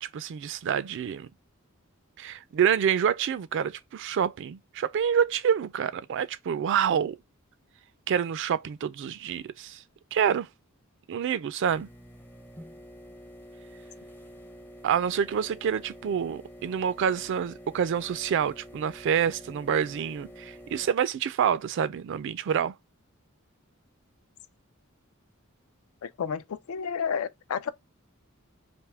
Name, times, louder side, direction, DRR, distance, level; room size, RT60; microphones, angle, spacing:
voice 1, 0.0-1.3 2.2-7.2 8.1-9.8 10.1-10.5 11.1-11.9 14.8-22.7, right 8 dB, 60° right, 0.3 m, -27 dB
sound 1, 11.7-20.9, equal, 10° left, 0.5 m, -48 dB
voice 2, 26.0-27.7, left 6 dB, 80° left, 0.4 m, -31 dB
3.4 x 2.6 x 3.4 m
head